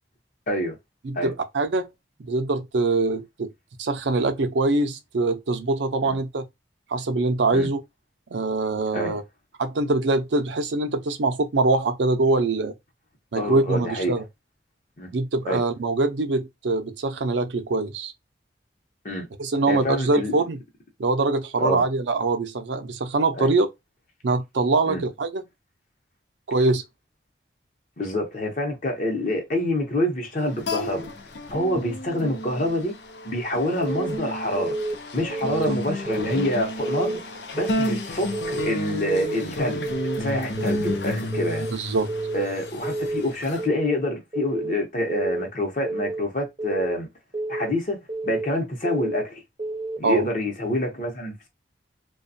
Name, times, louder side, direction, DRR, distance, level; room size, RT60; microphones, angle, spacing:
voice 1, 0.5-0.8 1.1-1.3 6.0-6.2 7.5-7.7 8.9-9.2 13.3-14.1 15.0-15.1 15.5-15.6 19.0-19.3 19.7-20.4 21.6-21.8 23.4-23.5 24.9-25.0 28.0-31.1 31.5-32.9 33.2-34.8 35.1-37.2 37.5-39.8 40.2-41.7 42.3-47.1 47.5-49.4 50.0-51.5, left 1 dB, 45° left, 0.8 m, -27 dB
voice 2, 1.0-1.9 2.2-3.5 3.8-6.4 6.9-7.8 8.3-9.2 9.6-12.7 13.3-14.2 15.1-18.1 19.4-20.6 21.0-23.7 24.2-25.4 26.5-26.8 31.9-32.0 35.5-35.8 41.7-42.1 50.0-50.2, right 3 dB, 90° right, 0.5 m, -23 dB
sound 1, 30.4-43.7, left 1 dB, 80° left, 0.5 m, -32 dB
Keyboard (musical) / Alarm, 33.8-34.2 34.6-34.9 35.3-35.7 36.1-36.4 36.8-37.2 37.6-37.9 38.3-38.7 39.1-39.4 39.8-40.2 40.6-41.0 41.3-41.7 42.1-42.5 42.8-43.2 43.6-44.0 44.3-44.7 45.1-45.5 45.8-46.2 46.6-47.0 47.3-47.7 48.1-48.5 48.8-49.2 49.6-50.0, right 2 dB, 30° right, 0.6 m, -29 dB
2.4 x 2.3 x 2.6 m
head